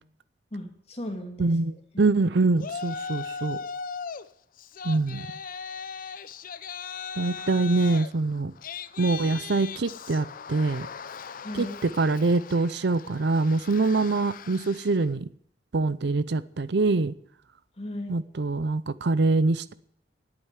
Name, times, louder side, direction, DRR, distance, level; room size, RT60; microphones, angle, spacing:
voice 1, 0.5-1.5 1.9-2.1 11.3-11.8 17.8-18.1, left 1 dB, 35° left, 2.5 m, -36 dB
voice 2, 1.4-1.7 2.0-3.6 4.8-5.3 7.2-8.5 9.0-10.9 11.5-15.3 15.7-17.1 18.1-19.7, right 3 dB, 70° right, 0.6 m, -24 dB
Yell, 2.6-4.2 4.6-15.0, left 5 dB, 50° left, 0.6 m, -39 dB
11.0 x 8.9 x 9.8 m
head